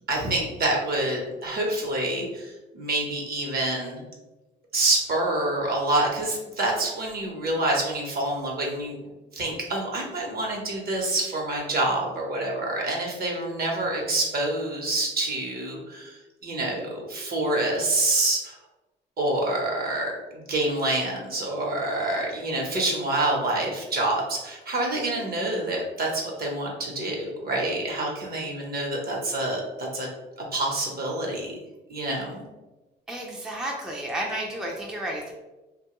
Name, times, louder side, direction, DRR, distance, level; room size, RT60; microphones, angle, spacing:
voice 1, 0.1-4.0 4.7-9.0 9.3-16.2 16.4-18.6 19.2-30.1 30.5-31.5 31.9-32.4, right 2 dB, 50° right, -1 dB, 0.9 m, -27 dB
voice 2, 33.1-35.3, right 1 dB, 5° right, -2 dB, 0.5 m, -32 dB
2.9 x 2.2 x 2.9 m, 1.1 s
cardioid pair, 90°, 20 cm